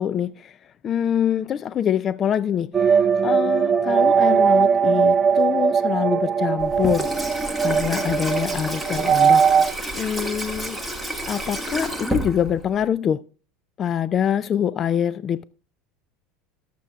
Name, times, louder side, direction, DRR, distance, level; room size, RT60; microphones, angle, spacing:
voice 1, 0.0-7.1 7.6-9.4 9.9-10.8 11.3-13.2 13.8-15.4, left 9 dB, 35° left, 0.4 m, -25 dB
sound 1, 2.7-9.7, right 6 dB, 25° right, 0.7 m, -19 dB
Water tap faucet / Sink (filling or washing), 6.6-12.9, equal, ahead, 1.6 m, -30 dB
21.5 x 7.6 x 2.3 m
supercardioid pair, 115°, 0 cm